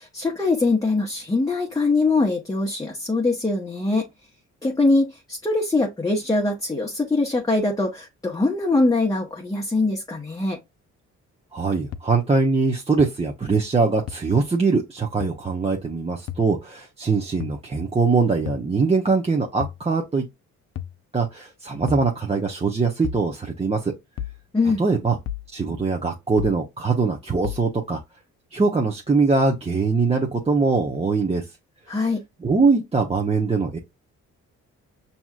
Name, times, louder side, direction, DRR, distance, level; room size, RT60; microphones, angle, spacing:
voice 1, 0.0-4.1 4.6-10.6 24.5-24.8 31.9-32.2, left 3 dB, 10° left, 0.9 m, -22 dB
voice 2, 11.5-20.2 21.1-23.9 24.8-25.2 25.5-28.0 28.5-31.5 32.4-33.8, right 4 dB, 20° right, 0.9 m, -22 dB
sound 1, 11.9-12.0 13.0-13.1 14.1-14.2 15.2-15.4 16.3-16.5 17.4-17.6 18.5-18.7 19.6-19.8 20.8-21.0 21.9-22.1 23.0-23.3 24.2-24.4 25.3-25.5 26.4-26.6 27.4-27.7, left 8 dB, 60° left, 0.6 m, -32 dB
6.0 x 2.8 x 2.4 m
cardioid pair, 90°, 30 cm